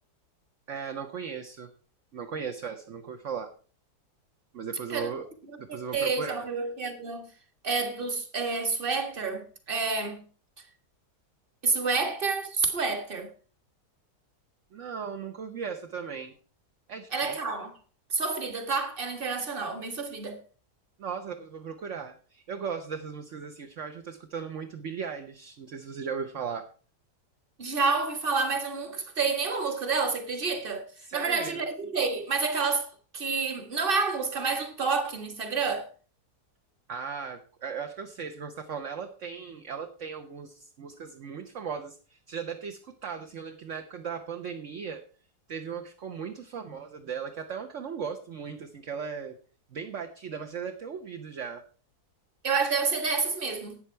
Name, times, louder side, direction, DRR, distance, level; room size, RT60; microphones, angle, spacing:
voice 1, 0.7-1.7 2.1-3.5 4.5-5.3 5.6-6.5 14.7-16.3 16.9-17.5 21.0-26.7 31.0-31.7 36.9-45.0 45.5-49.4 49.7-51.6, right 6 dB, 55° right, 1.3 m, -37 dB
voice 2, 5.9-7.3 7.6-10.2 11.6-13.3 17.1-17.7 18.1-20.4 27.6-30.8 31.1-35.9 52.4-53.8, right 4 dB, 35° right, 1.7 m, -29 dB
12.5 x 8.6 x 4.5 m
omnidirectional pair, 1.7 m